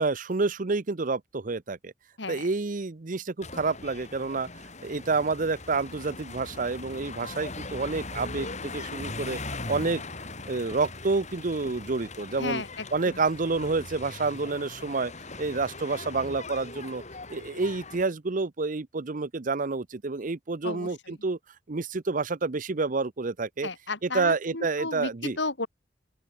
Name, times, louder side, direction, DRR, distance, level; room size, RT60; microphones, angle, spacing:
voice 1, 0.0-1.9 2.3-4.5 4.8-9.4 9.7-10.0 10.5-12.6 12.9-15.1 15.4-17.0 17.3-21.4 21.7-23.7 24.0-25.4, right 3 dB, 45° right, 0.7 m, -29 dB
sound 1, 3.4-18.0, left 3 dB, 40° left, 6.0 m, -40 dB
voice 2, 12.4-13.2 20.6-21.1 23.6-25.7, left 3 dB, 65° left, 2.9 m, -34 dB
open air
head